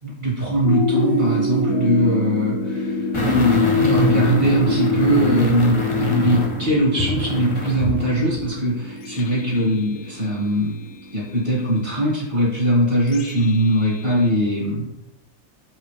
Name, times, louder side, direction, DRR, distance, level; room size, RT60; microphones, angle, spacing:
voice 1, 0.0-10.8 11.1-14.9, right 1 dB, 35° right, -6 dB, 2.3 m, -21 dB
sound 1, 0.6-14.2, left 3 dB, 80° left, 1.1 m, -26 dB
sound 2, 3.1-8.0 8.4-8.5, equal, 30° left, 0.6 m, -25 dB
5.7 x 5.4 x 3.3 m, 0.95 s
omnidirectional pair, 1.5 m